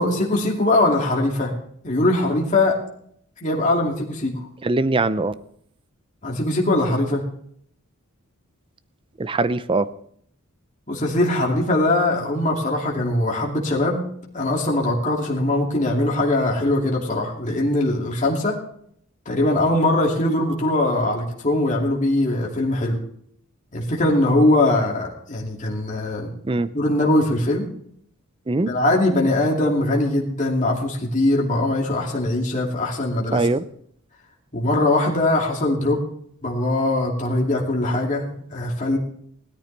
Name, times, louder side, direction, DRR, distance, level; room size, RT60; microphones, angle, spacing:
voice 1, 0.0-1.5 1.8-2.8 3.4-4.5 6.2-7.2 10.9-14.0 14.3-18.6 19.3-23.0 23.7-26.3 26.7-27.6 28.7-33.5 34.5-36.0 36.4-39.0, left 1 dB, 35° left, -2 dB, 2.5 m, -21 dB
voice 2, 4.6-5.3 9.2-9.9 26.4-26.7 28.5-28.7 33.3-33.6, right 3 dB, 25° right, 15 dB, 0.5 m, -21 dB
17.5 x 13.0 x 3.4 m, 0.65 s
head